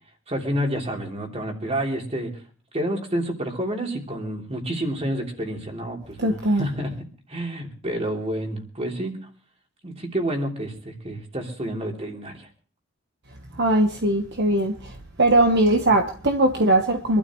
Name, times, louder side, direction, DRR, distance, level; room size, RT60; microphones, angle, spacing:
voice 1, 0.3-2.3 2.7-6.9 7.3-9.2 9.8-12.5, right 1 dB, 30° right, 3.2 m, -29 dB
voice 2, 6.2-6.7 13.6-14.9 15.2-17.2, right 1 dB, 60° right, 1.2 m, -20 dB
25.5 x 12.0 x 3.1 m
head